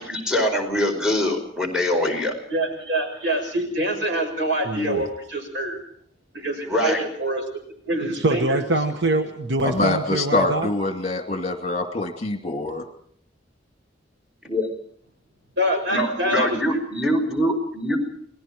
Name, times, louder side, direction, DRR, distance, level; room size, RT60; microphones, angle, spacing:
voice 1, 0.0-2.3 6.6-7.0 14.4-14.7 15.9-18.0, left 1 dB, 5° right, 2 dB, 4.8 m, -23 dB
voice 2, 2.5-5.8 6.3-7.4 7.9-8.6 15.6-16.8, right 1 dB, 85° right, 5 dB, 6.5 m, -25 dB
voice 3, 4.6-5.0 8.1-10.7, right 2 dB, 70° right, 6 dB, 1.3 m, -24 dB
voice 4, 9.6-12.8, left 2 dB, 40° left, 4 dB, 2.5 m, -24 dB
29.5 x 20.0 x 4.6 m, 0.64 s
head